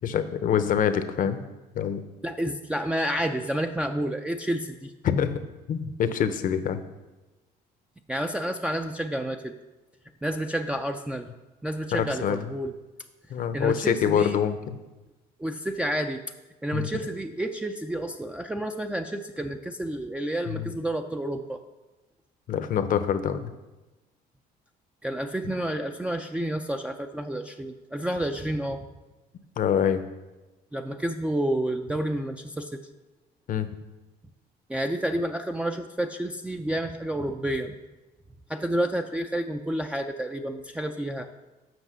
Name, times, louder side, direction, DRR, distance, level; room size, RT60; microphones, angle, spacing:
voice 1, 0.0-1.4 1.7-2.0 5.0-5.4 5.7-6.8 11.9-12.4 13.3-14.7 16.7-16.9 20.5-20.7 22.5-23.5 29.6-30.0 33.5-33.7, left 8 dB, 55° left, 11 dB, 0.8 m, -25 dB
voice 2, 2.2-4.9 8.1-9.6 10.2-11.3 11.6-12.7 13.5-14.4 15.4-16.2 16.6-21.6 25.0-28.9 30.7-32.7 34.7-37.7 38.5-41.3, right 1 dB, 5° right, 3 dB, 0.4 m, -30 dB
7.9 x 6.0 x 6.1 m, 1.1 s
cardioid pair, 110°, 17 cm